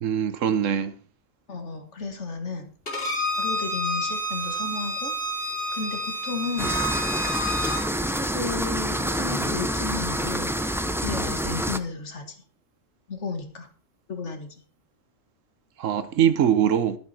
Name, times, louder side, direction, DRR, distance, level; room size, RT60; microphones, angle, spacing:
voice 1, 0.0-0.9 15.8-17.0, right 9 dB, 85° right, 1.3 m, -22 dB
voice 2, 1.5-2.7 3.4-5.1 5.4-6.8 8.1-10.5 11.0-12.4 13.1-13.7 14.1-14.6, left 4 dB, 65° left, 2.3 m, -33 dB
Bowed string instrument, 2.9-7.8, left 1 dB, 50° left, 3.2 m, -29 dB
sound 1, 6.6-11.8, equal, 5° right, 0.6 m, -27 dB
12.0 x 11.0 x 4.4 m
omnidirectional pair, 1.3 m